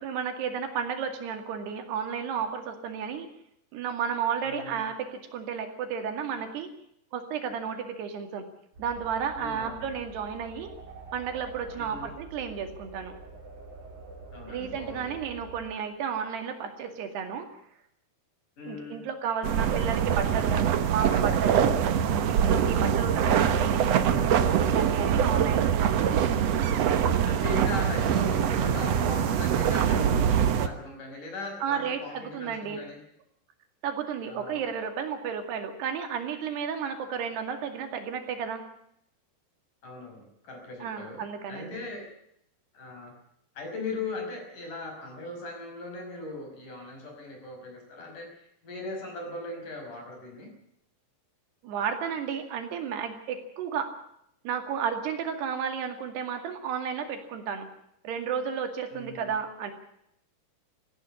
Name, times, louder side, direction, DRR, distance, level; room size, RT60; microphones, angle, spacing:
voice 1, 0.0-3.3 3.7-6.7 7.1-8.5 8.8-10.7 11.1-13.1 14.5-17.5 18.6-21.7 22.3-24.3 24.6-26.3 31.6-32.8 33.8-38.6 40.8-41.8 51.6-53.9 54.4-57.7 58.0-59.7, right 7 dB, 85° right, 6 dB, 4.4 m, -33 dB
voice 2, 4.4-4.9 9.4-9.9 11.7-12.1 14.3-15.2 18.6-19.0 23.0-23.4 27.3-33.0 34.2-34.6 39.8-42.1 42.7-43.1 43.5-50.5 58.9-59.3, left 2 dB, 50° left, 3 dB, 6.7 m, -39 dB
Effected Didge, 8.7-15.7, right 3 dB, 50° right, 5.3 m, -46 dB
sound 1, 19.4-30.7, right 8 dB, 70° right, 1.6 m, -24 dB
18.5 x 15.5 x 9.7 m, 0.74 s
omnidirectional pair, 4.6 m